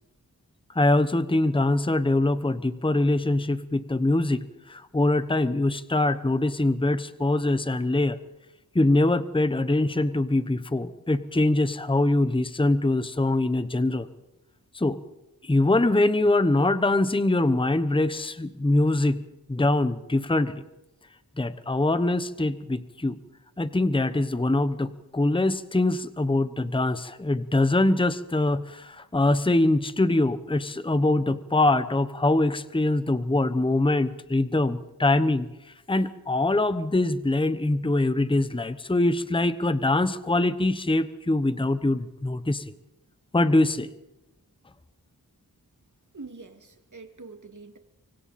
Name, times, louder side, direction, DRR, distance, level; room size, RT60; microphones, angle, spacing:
voice 1, 0.7-8.2 8.7-14.1 14.7-15.0 15.4-19.2 19.5-20.6 21.4-23.2 23.6-35.5 35.9-42.7 43.3-43.9, left 2 dB, 15° left, 12 dB, 1.0 m, -23 dB
voice 2, 46.1-47.8, right 3 dB, 55° right, 6 dB, 2.3 m, -44 dB
25.0 x 24.5 x 4.2 m, 0.95 s
wide cardioid pair, 75°, 37 cm